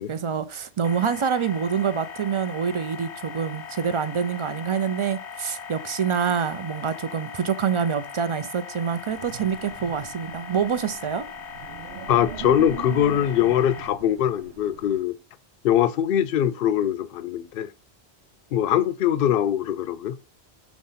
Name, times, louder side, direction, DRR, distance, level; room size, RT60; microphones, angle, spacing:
voice 1, 0.1-11.3, right 7 dB, 45° right, 0.4 m, -26 dB
sound 1, 0.8-13.9, left 7 dB, 90° left, 1.0 m, -39 dB
Wind, 9.1-15.0, right 9 dB, 80° right, 0.9 m, -40 dB
voice 2, 12.1-15.1 15.6-17.7 18.5-20.2, left 10 dB, 65° left, 0.7 m, -22 dB
7.1 x 3.2 x 5.6 m
omnidirectional pair, 1.1 m